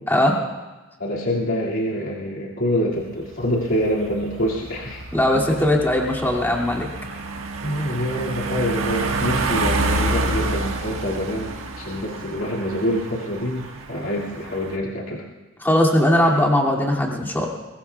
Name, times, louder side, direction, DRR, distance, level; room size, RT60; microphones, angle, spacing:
voice 1, 0.1-0.4 5.1-6.9 15.6-17.5, left 1 dB, 10° left, -2 dB, 2.5 m, -19 dB
voice 2, 1.0-5.0 5.5-5.6 7.6-15.2, equal, 70° left, -5 dB, 2.3 m, -26 dB
sound 1, 3.0-14.7, right 2 dB, 75° right, 1.5 m, -28 dB
22.5 x 21.5 x 2.3 m, 1.2 s
head